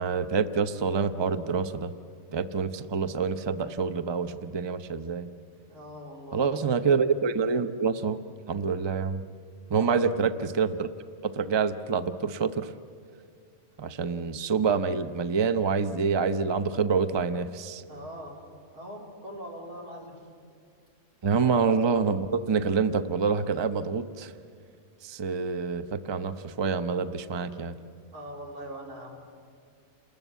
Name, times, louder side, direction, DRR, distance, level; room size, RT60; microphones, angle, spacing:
voice 1, 0.0-1.9 2.3-5.3 6.3-8.2 8.5-9.2 9.7-10.9 11.2-12.7 13.8-17.8 21.2-24.3 25.0-27.7, right 5 dB, 25° right, 10 dB, 0.6 m, -27 dB
voice 2, 5.7-6.5 9.8-10.1 17.9-18.4 18.7-20.2 21.3-21.4 28.1-29.2, equal, 85° right, -1 dB, 4.4 m, -42 dB
29.0 x 20.5 x 8.2 m, 2.4 s
omnidirectional pair, 1.5 m